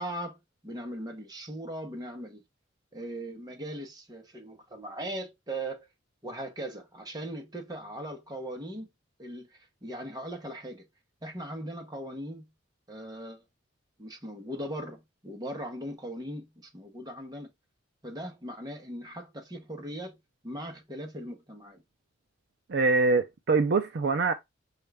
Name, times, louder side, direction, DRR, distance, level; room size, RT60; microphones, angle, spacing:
voice 1, 0.0-2.4 2.9-5.9 6.2-8.9 9.2-10.8 11.2-12.4 12.9-13.4 14.0-17.5 18.0-20.2 20.4-21.8, right 1 dB, 20° right, 1.0 m, -39 dB
voice 2, 22.7-24.3, right 3 dB, 60° right, 0.5 m, -24 dB
5.3 x 2.5 x 3.3 m
head